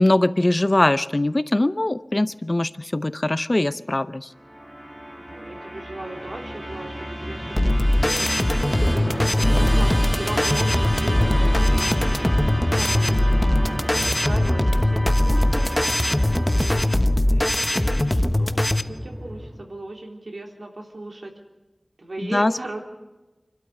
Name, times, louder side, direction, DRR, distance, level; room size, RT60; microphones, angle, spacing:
voice 1, 0.0-4.3 22.2-22.5, left 1 dB, 40° left, 14 dB, 0.7 m, -21 dB
Musical instrument, 4.4-19.7, equal, 20° right, 2.2 m, -29 dB
voice 2, 5.2-11.9 12.7-16.3 16.6-21.3 22.0-22.8, right 2 dB, 85° right, 2 dB, 3.3 m, -37 dB
sound 1, 7.6-18.8, left 1 dB, 25° left, 1.1 m, -21 dB
28.0 x 12.5 x 8.0 m, 1.1 s
wide cardioid pair, 50°, 0 cm